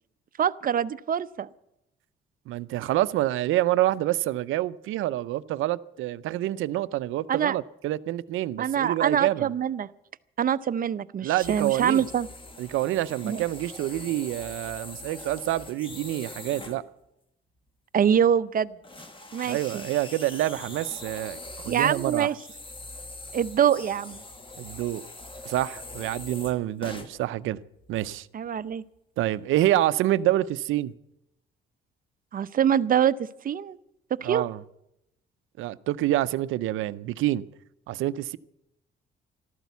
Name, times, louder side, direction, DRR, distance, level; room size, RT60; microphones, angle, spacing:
voice 1, 0.4-1.5 7.3-7.6 8.6-9.9 10.4-12.3 13.2-13.4 17.9-18.7 19.3-19.9 21.7-22.3 23.3-24.2 28.3-28.8 32.3-33.8 34.2-34.4, right 9 dB, 45° right, 0.6 m, -24 dB
voice 2, 2.5-9.5 11.2-12.0 12.6-16.8 19.4-22.3 24.6-25.0 25.4-27.6 27.9-28.3 29.2-30.9 34.2-34.6 35.6-37.5 37.9-38.4, right 14 dB, 85° right, 0.5 m, -27 dB
sound 1, 11.4-16.8 18.2-18.3 18.8-27.2 27.8-28.2 28.7-28.8 29.2-29.3, left 2 dB, 25° left, 1.6 m, -42 dB
13.5 x 12.5 x 8.2 m
cardioid pair, 90°, 20 cm